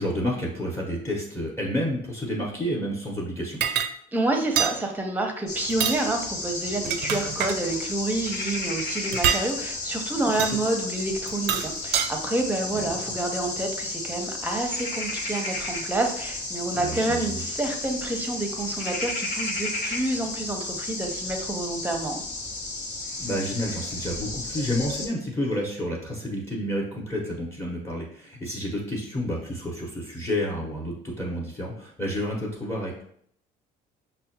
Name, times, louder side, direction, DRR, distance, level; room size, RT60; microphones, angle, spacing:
voice 1, 0.0-3.6 10.2-10.4 12.7-13.0 16.7-17.4 23.2-33.0, equal, 15° left, -3 dB, 0.9 m, -30 dB
sound 1, 3.6-3.9 4.6-4.8 5.7-6.0 6.7-7.6 9.1-9.5 10.4-10.6 11.3-12.1, right 9 dB, 80° right, 0.4 m, -25 dB
voice 2, 4.1-22.2, right 2 dB, 10° right, 3 dB, 0.7 m, -28 dB
sound 2, 5.5-25.1, left 2 dB, 45° left, 1.0 m, -33 dB
5.5 x 2.1 x 2.8 m, 0.65 s
cardioid pair, 110°, 17 cm